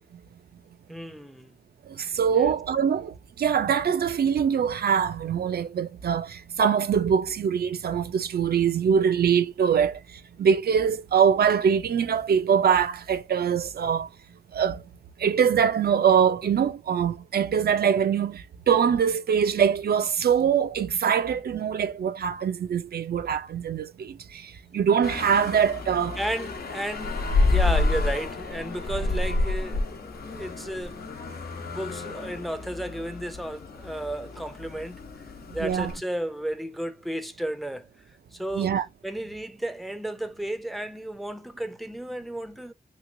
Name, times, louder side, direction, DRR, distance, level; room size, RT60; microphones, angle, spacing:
voice 1, 0.9-1.5 2.3-2.5 26.2-31.1 31.5-35.0 35.5-37.9 38.3-38.7 39.0-42.7, right 1 dB, ahead, 0.5 m, -33 dB
voice 2, 1.9-10.0 10.4-14.1 14.5-14.8 15.2-26.2 35.6-35.9 38.5-38.8, right 7 dB, 75° right, 0.4 m, -23 dB
sound 1, 25.0-36.0, left 3 dB, 75° left, 0.9 m, -29 dB
3.3 x 3.0 x 2.6 m
wide cardioid pair, 105°, 16 cm